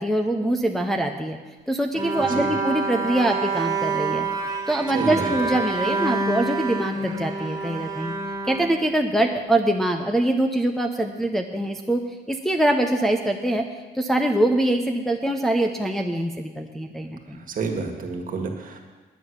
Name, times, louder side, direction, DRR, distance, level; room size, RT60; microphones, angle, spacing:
voice 1, 0.0-1.4 1.7-4.3 4.7-8.1 8.5-12.0 12.3-13.6 13.9-17.4, right 1 dB, ahead, 2 dB, 0.6 m, -23 dB
Bowed string instrument, 1.9-9.3, right 3 dB, 20° right, 1.9 m, -27 dB
voice 2, 2.2-2.5 4.9-5.3 17.5-18.8, right 4 dB, 50° right, 3 dB, 1.7 m, -29 dB
10.0 x 8.9 x 6.5 m, 1.3 s
cardioid pair, 125°, 18 cm